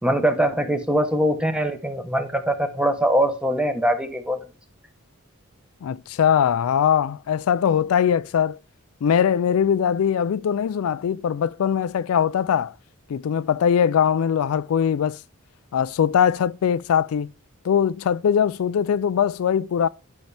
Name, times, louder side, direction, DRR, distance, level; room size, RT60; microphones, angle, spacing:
voice 1, 0.0-4.4, right 1 dB, 5° right, 1.0 m, -22 dB
voice 2, 5.8-8.6 9.0-12.7 13.1-15.2 15.7-17.3 17.6-19.9, left 8 dB, 75° left, 0.3 m, -21 dB
10.5 x 5.7 x 3.3 m
head